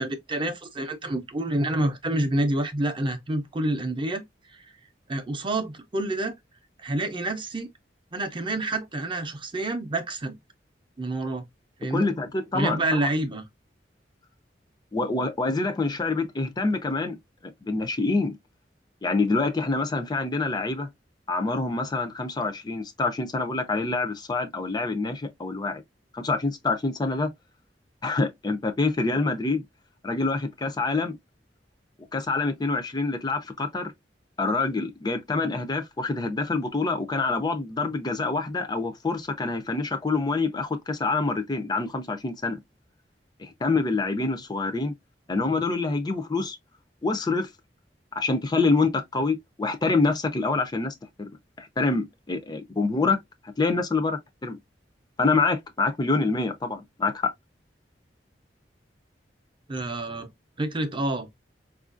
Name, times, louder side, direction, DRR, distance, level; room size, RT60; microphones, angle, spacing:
voice 1, 0.0-4.2 4.5-4.7 5.1-6.4 6.8-7.7 8.1-10.4 11.0-11.5 11.8-12.1 12.5-13.4 59.7-60.3 60.6-61.3, right 1 dB, 30° right, 0.6 m, -28 dB
voice 2, 11.9-13.1 14.9-17.2 17.6-18.4 19.0-20.9 21.3-25.8 26.1-27.3 28.0-29.6 30.0-31.2 32.1-33.9 34.4-42.6 43.4-44.9 45.3-46.6 47.0-47.5 48.2-51.3 51.6-53.2 53.6-54.6 55.2-57.3, left 3 dB, 25° left, 0.4 m, -26 dB
4.3 x 2.4 x 2.4 m
head